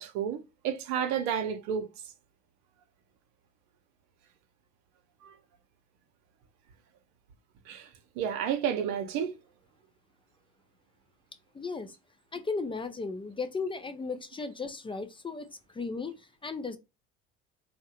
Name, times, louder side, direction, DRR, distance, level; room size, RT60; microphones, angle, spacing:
voice 1, 0.0-1.9 5.2-5.3 7.7-7.9 8.2-9.3, right 8 dB, 70° right, 0.6 m, -31 dB
voice 2, 11.5-12.0 12.3-16.8, left 4 dB, 20° left, 0.4 m, -36 dB
2.6 x 2.1 x 2.7 m
hypercardioid pair, 70°, 30 cm